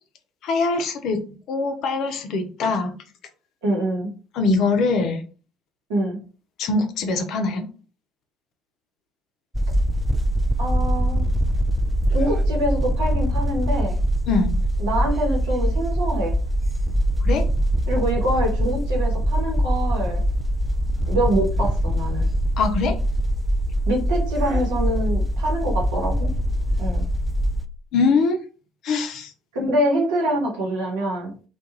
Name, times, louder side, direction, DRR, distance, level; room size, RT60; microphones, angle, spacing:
voice 1, 0.4-1.2 1.5-2.9 4.3-5.2 6.6-7.7 14.3-14.6 17.2-17.4 22.6-22.9 27.9-28.4 28.8-29.3, left 3 dB, 55° left, 6 dB, 0.5 m, -22 dB
voice 2, 3.6-4.1 5.9-6.2 10.6-11.2 12.1-14.0 14.8-16.3 17.9-20.2 21.1-22.3 23.9-26.3 26.8-27.0 29.5-31.3, right 1 dB, 70° right, -1 dB, 1.0 m, -25 dB
sound 1, 9.5-27.7, equal, 5° right, 0.4 m, -23 dB
2.3 x 2.3 x 3.0 m, 0.36 s
figure-of-eight pair, 60°, 0 cm